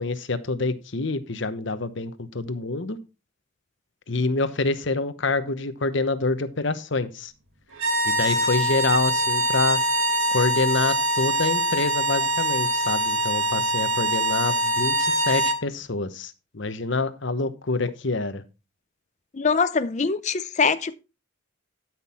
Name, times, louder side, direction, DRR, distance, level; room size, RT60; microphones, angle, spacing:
voice 1, 0.0-3.0 4.1-7.3 8.0-9.8 10.3-18.4, left 3 dB, 60° left, 1.0 m, -26 dB
sound 1, 7.7-15.6, right 1 dB, 80° right, 2.0 m, -23 dB
voice 2, 19.3-20.9, left 5 dB, 35° left, 0.5 m, -23 dB
12.0 x 6.1 x 4.3 m
head